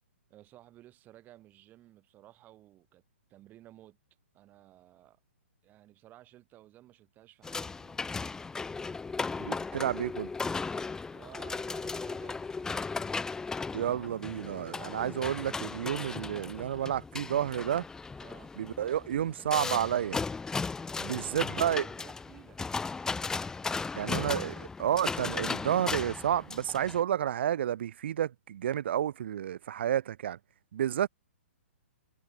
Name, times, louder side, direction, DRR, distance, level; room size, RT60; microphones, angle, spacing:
voice 1, 0.3-3.0 3.3-4.0 4.3-5.2 5.6-8.1 11.1-12.5 12.8-13.3 18.2-18.5 21.0-22.6, right 14 dB, 25° right, 5.5 m, -55 dB
sound 1, 7.4-27.0, left 4 dB, 10° left, 2.0 m, -36 dB
voice 2, 9.4-10.3 13.7-17.9 18.6-20.2 21.0-21.8 24.0-30.4 30.7-31.1, right 10 dB, 55° right, 1.1 m, -30 dB
figure-of-eight pair, 125°, 7 cm